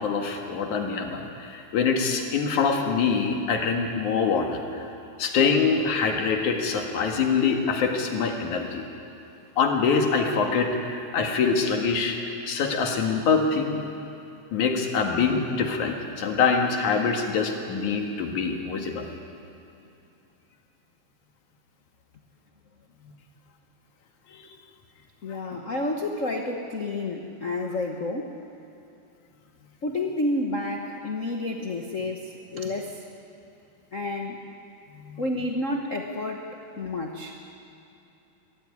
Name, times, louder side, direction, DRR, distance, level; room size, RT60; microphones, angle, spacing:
voice 1, 0.0-4.8 5.2-8.9 9.6-13.9 14.5-19.1 23.0-23.1 24.3-24.4 25.3-25.4 34.9-35.2, left 5 dB, 70° left, 3 dB, 3.1 m, -25 dB
voice 2, 25.2-28.4 29.8-33.0 33.9-34.4 35.2-37.4, left 2 dB, 85° left, 2 dB, 0.7 m, -30 dB
22.0 x 15.0 x 9.6 m, 2.8 s
omnidirectional pair, 3.6 m